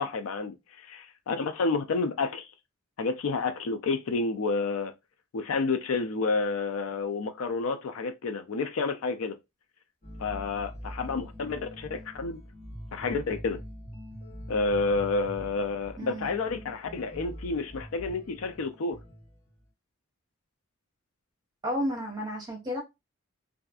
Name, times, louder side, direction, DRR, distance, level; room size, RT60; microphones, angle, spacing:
voice 1, 0.0-2.5 3.0-4.9 5.3-9.4 10.2-12.4 12.9-13.6 14.5-19.0, left 3 dB, 75° left, 0.4 m, -30 dB
sound 1, 10.0-19.6, equal, 30° left, 1.0 m, -44 dB
voice 2, 16.0-16.3 21.6-22.8, equal, 20° right, 0.9 m, -32 dB
2.6 x 2.4 x 2.3 m
head